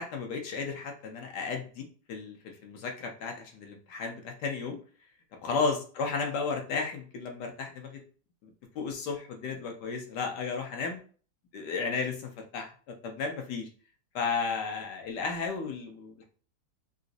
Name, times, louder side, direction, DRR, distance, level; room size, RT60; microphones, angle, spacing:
voice 1, 0.0-2.4 2.6-4.8 5.4-8.0 8.4-11.0 11.5-13.7 14.1-16.2, left 4 dB, 65° left, 3 dB, 1.2 m, -34 dB
3.9 x 2.5 x 2.5 m, 0.41 s
omnidirectional pair, 2.1 m